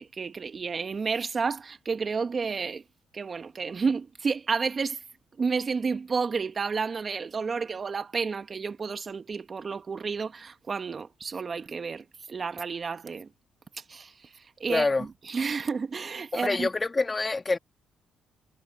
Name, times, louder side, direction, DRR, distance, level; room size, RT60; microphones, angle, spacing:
voice 1, 0.0-2.8 3.1-5.0 5.4-13.3 13.9-16.7, right 5 dB, 40° right, 1.5 m, -31 dB
voice 2, 14.7-15.1 16.3-17.6, left 3 dB, 25° left, 1.7 m, -26 dB
cardioid pair, 90°, 0 cm